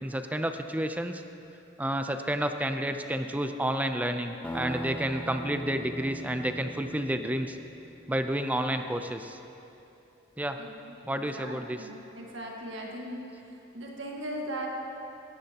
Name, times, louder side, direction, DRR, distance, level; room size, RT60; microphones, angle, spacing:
voice 1, 0.0-1.2 1.8-7.6 8.1-9.4 10.4-10.6 11.1-11.9, right 1 dB, 10° right, 7 dB, 0.5 m, -30 dB
sound 1, 4.4-8.2, equal, 10° left, 0.9 m, -40 dB
voice 2, 10.6-14.7, right 1 dB, 70° right, -2 dB, 1.7 m, -39 dB
18.5 x 13.5 x 2.9 m, 2.9 s
head